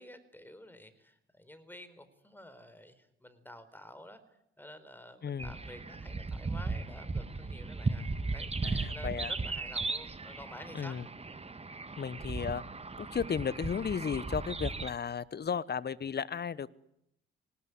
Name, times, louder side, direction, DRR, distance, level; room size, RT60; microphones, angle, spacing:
voice 1, 0.0-4.2 4.6-11.0, left 1 dB, 5° left, 12 dB, 4.4 m, -51 dB
voice 2, 5.2-5.5 8.6-9.3 10.7-11.0 12.0-12.6 13.0-16.7, left 7 dB, 35° left, 21 dB, 1.1 m, -34 dB
sound 1, 5.4-14.9, right 3 dB, 20° right, 1.7 m, -37 dB
25.0 x 19.0 x 9.8 m, 0.78 s
figure-of-eight pair, 45°, 30 cm